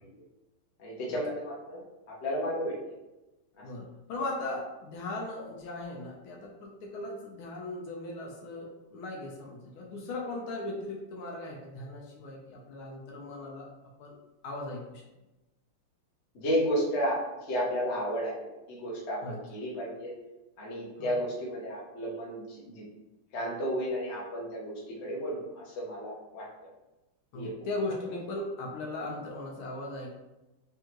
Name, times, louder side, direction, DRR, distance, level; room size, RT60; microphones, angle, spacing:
voice 1, 0.8-1.8 2.1-2.8 16.3-20.1 20.6-22.8 23.3-26.5 27.3-27.5, equal, 45° left, -4 dB, 1.0 m, -32 dB
voice 2, 3.6-13.7 14.0-14.2 14.4-15.0 19.2-19.4 21.0-21.1 27.3-30.2, left 2 dB, 75° left, -1 dB, 1.6 m, -38 dB
3.7 x 3.4 x 2.9 m, 1.0 s
omnidirectional pair, 2.4 m